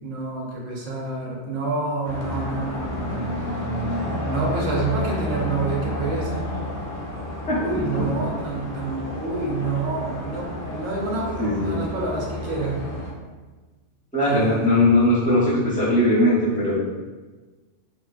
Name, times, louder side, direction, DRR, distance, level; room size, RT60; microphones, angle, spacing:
voice 1, 0.0-6.5 7.6-12.8 14.2-14.6, right 3 dB, 90° right, -2 dB, 0.9 m, -28 dB
sound 1, 2.0-13.1, left 1 dB, 55° left, 0.7 m, -31 dB
voice 2, 11.4-11.8 14.1-16.8, left 1 dB, 10° left, -9 dB, 0.6 m, -19 dB
2.6 x 2.1 x 2.2 m, 1.3 s
omnidirectional pair, 1.3 m